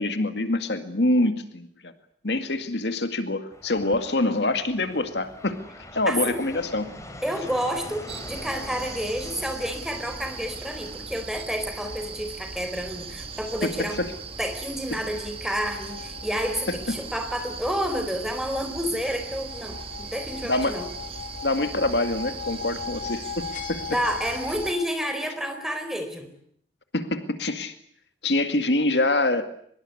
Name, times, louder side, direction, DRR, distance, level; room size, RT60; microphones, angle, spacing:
voice 1, 0.0-1.9 2.2-5.6 5.9-6.9 13.6-13.7 14.0-14.1 16.7-16.8 20.5-20.8 21.4-23.8 26.9-27.7 28.2-29.5, left 2 dB, 75° left, 8 dB, 2.1 m, -25 dB
Fixed-wing aircraft airplane, 3.5-11.1, left 1 dB, 20° left, 4.2 m, -43 dB
voice 2, 6.1-6.5 7.2-14.0 14.4-20.9 23.9-26.3, equal, 5° right, 7 dB, 4.5 m, -30 dB
sound 1, 8.1-24.7, right 4 dB, 35° right, 1.8 m, -39 dB
sound 2, 15.5-16.6 19.0-24.9, left 8 dB, 50° left, 2.3 m, -39 dB
24.0 x 22.0 x 9.8 m, 0.66 s
head